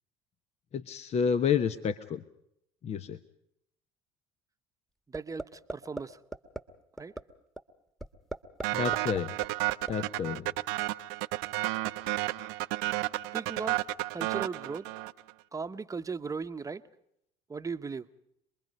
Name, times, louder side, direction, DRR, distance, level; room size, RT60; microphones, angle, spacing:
voice 1, 0.7-2.2 2.8-3.2 8.7-9.3 9.9-10.5, left 7 dB, 45° left, 10 dB, 1.0 m, -29 dB
sound 1, 5.1-5.4 5.7-6.0 6.3-6.6 7.0-7.2 7.6-7.7 8.0-8.7 8.9-9.9, right 1 dB, ahead, 1.6 m, -36 dB
voice 2, 5.1-6.2 7.0-7.1 13.3-13.9 14.1-14.9 15.5-16.9 17.5-18.1, right 5 dB, 20° right, 10 dB, 1.0 m, -37 dB
sound 2, 8.6-15.3, right 19 dB, 75° right, 0.7 m, -32 dB
27.0 x 21.5 x 5.4 m, 0.76 s
hypercardioid pair, 75°, 15 cm